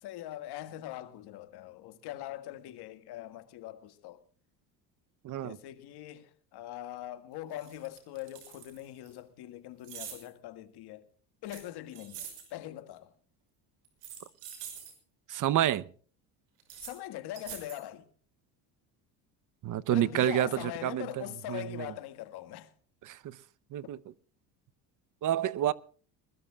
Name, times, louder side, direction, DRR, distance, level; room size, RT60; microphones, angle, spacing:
voice 1, 0.0-4.2 5.4-11.1 11.4-13.1 16.8-18.0 19.9-22.7, left 13 dB, 70° left, 1.9 m, -42 dB
voice 2, 5.2-5.6 15.3-15.9 19.6-20.5 20.8-21.1 21.5-21.9 23.1-23.2 23.7-24.0 25.2-25.7, right 12 dB, 50° right, 0.8 m, -28 dB
sound 1, 7.0-7.1 7.5-9.1 9.8-10.3 11.5-12.5 13.8-14.9 16.6-16.9 17.3-17.8, right 8 dB, 80° right, 6.1 m, -45 dB
21.0 x 21.0 x 2.4 m
supercardioid pair, 100°, 41 cm